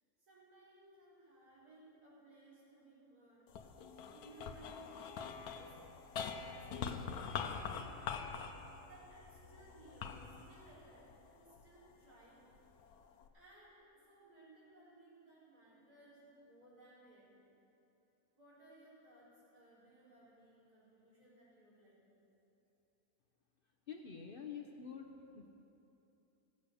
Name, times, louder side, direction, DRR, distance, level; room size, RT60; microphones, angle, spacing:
voice 1, 0.2-3.5 4.1-5.8 6.3-8.3 8.8-12.5 13.3-17.5 18.4-22.3, right 2 dB, 85° right, -9 dB, 4.7 m, -62 dB
sound 1, 3.5-11.9 12.5-13.3, left 6 dB, 90° left, 1.3 m, -44 dB
voice 2, 23.9-25.5, left 6 dB, 50° left, 3 dB, 0.8 m, -47 dB
16.0 x 8.2 x 6.7 m, 2.9 s
omnidirectional pair, 1.6 m